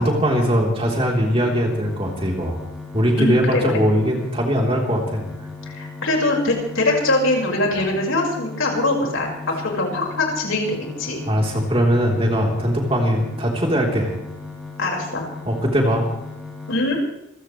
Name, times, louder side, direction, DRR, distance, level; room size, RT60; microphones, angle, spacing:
voice 1, 0.0-2.6 2.9-5.3 11.3-14.1 15.5-16.1, equal, 30° right, -1 dB, 3.6 m, -20 dB
sound 1, 0.8-16.8, left 3 dB, ahead, 5.6 m, -37 dB
voice 2, 3.2-3.7 5.7-9.3 9.6-11.2 14.8-15.2 16.7-17.0, left 2 dB, 80° left, 0 dB, 5.2 m, -22 dB
27.0 x 15.5 x 3.3 m, 0.83 s
head